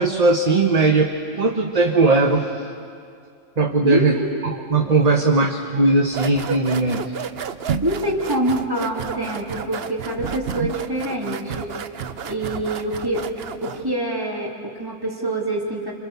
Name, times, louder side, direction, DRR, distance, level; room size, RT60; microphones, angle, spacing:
voice 1, 0.0-2.5 3.6-4.2 4.4-7.0, right 3 dB, 35° right, 4 dB, 1.1 m, -18 dB
voice 2, 3.8-4.3 7.8-11.7 12.2-13.3 13.6-15.9, right 1 dB, 20° right, -1 dB, 3.2 m, -25 dB
sound 1, 6.1-13.9, right 7 dB, 55° right, 1.0 m, -31 dB
29.5 x 26.5 x 7.1 m, 2.4 s
omnidirectional pair, 1.3 m